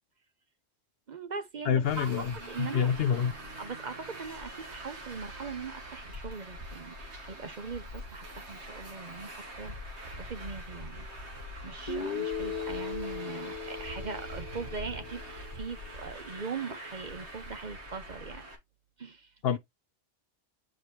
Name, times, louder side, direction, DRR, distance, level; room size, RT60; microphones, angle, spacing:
voice 1, 1.1-2.9 3.6-11.1 11.6-18.5 19.0-19.3, right 5 dB, 45° right, 0.8 m, -41 dB
voice 2, 1.7-3.3 19.4-19.6, left 7 dB, 65° left, 0.8 m, -27 dB
Traffic noise roadway noise, 1.8-18.6, right 1 dB, 70° right, 2.0 m, -44 dB
Guitar, 11.9-15.8, left 5 dB, 35° left, 1.2 m, -38 dB
7.8 x 5.0 x 3.0 m
omnidirectional pair, 1.2 m